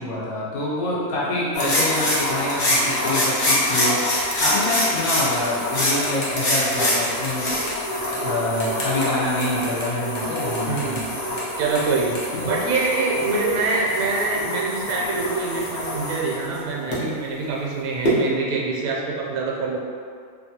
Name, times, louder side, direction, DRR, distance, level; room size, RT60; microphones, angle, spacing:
voice 1, 0.0-7.5 7.8-11.4 12.4-12.5, left 1 dB, 85° left, -7 dB, 1.1 m, -26 dB
sound 1, 1.5-17.0 18.0-18.2, left 1 dB, 50° left, 0.5 m, -25 dB
voice 2, 10.7-11.0 11.6-19.8, right 3 dB, 75° right, -2 dB, 1.0 m, -25 dB
2.9 x 2.2 x 2.7 m, 2.1 s
omnidirectional pair, 1.5 m